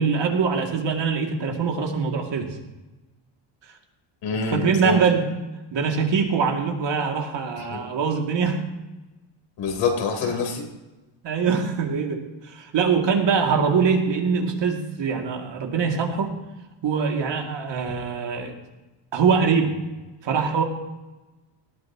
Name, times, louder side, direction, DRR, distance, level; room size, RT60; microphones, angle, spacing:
voice 1, 0.0-2.5 4.5-5.4 5.7-8.6 11.2-16.3 16.8-18.5 19.1-19.7 20.2-20.6, right 5 dB, 60° right, 1 dB, 2.8 m, -23 dB
voice 2, 4.2-5.0 7.7-7.8 9.6-10.6, left 5 dB, 85° left, 2 dB, 4.1 m, -25 dB
19.0 x 14.0 x 3.1 m, 1.1 s
cardioid pair, 110°, 49 cm